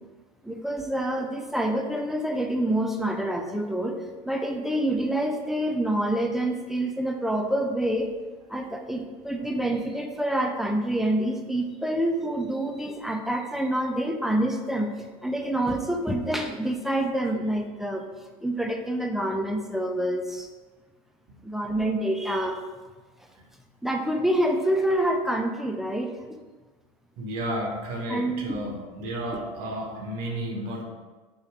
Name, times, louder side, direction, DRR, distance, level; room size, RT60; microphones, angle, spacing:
voice 1, 0.4-4.0 4.2-8.1 8.5-14.9 15.2-18.1 18.4-20.5 21.4-22.6 23.8-26.4 28.1-28.5, right 1 dB, ahead, 3 dB, 0.3 m, -27 dB
voice 2, 27.2-30.8, right 1 dB, 55° right, 1 dB, 0.8 m, -32 dB
3.6 x 2.2 x 3.3 m, 1.3 s
hypercardioid pair, 80°, 18 cm